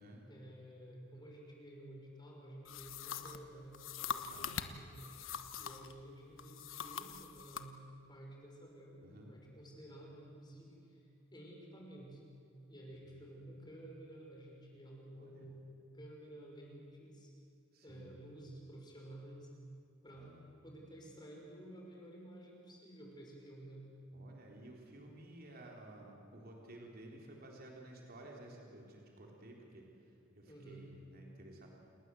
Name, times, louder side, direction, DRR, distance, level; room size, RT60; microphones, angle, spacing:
voice 1, 0.3-5.1 5.6-11.0 11.3-12.2 12.7-15.6 15.9-17.3 17.8-19.5 20.0-20.3 20.6-23.9 30.4-30.9, right 1 dB, 20° left, -1 dB, 5.5 m, -53 dB
sound 1, 2.6-5.9 6.4-7.7, left 7 dB, 80° left, 1.3 m, -43 dB
voice 2, 15.1-15.5 17.7-18.2 20.2-20.4 24.1-31.7, right 1 dB, 50° right, -1 dB, 4.0 m, -54 dB
29.0 x 20.0 x 7.9 m, 2.6 s
head